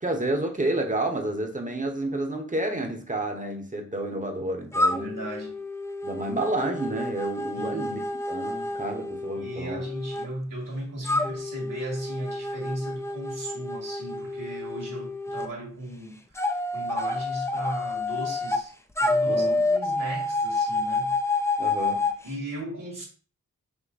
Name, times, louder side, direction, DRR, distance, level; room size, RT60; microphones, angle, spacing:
voice 1, 0.0-5.2 6.0-8.0 8.3-9.9 19.3-19.6 21.6-22.1, right 2 dB, 25° right, 0.9 m, -30 dB
sound 1, 4.7-10.3 11.0-15.5 16.4-18.6 19.0-22.2, left 2 dB, 10° left, 0.4 m, -29 dB
voice 2, 4.9-5.6 7.5-7.9 9.3-18.7 19.0-21.2 22.2-23.0, right 1 dB, 75° right, 2.2 m, -36 dB
5.9 x 2.0 x 4.0 m
wide cardioid pair, 100°, 33 cm